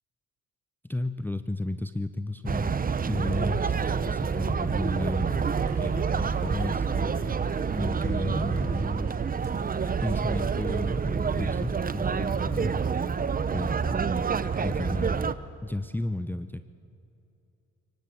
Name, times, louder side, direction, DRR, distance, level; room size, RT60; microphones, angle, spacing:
voice 1, 0.8-5.4 5.8-7.5 7.7-9.1 10.0-12.8 13.5-14.2 14.6-16.7, left 2 dB, 5° left, 10 dB, 0.7 m, -33 dB
sound 1, 2.5-15.3, right 6 dB, 30° right, 0.9 m, -28 dB
sound 2, 3.4-10.6, right 4 dB, 80° right, 5.1 m, -54 dB
23.5 x 18.5 x 8.6 m, 2.6 s
cardioid pair, 90°, 30 cm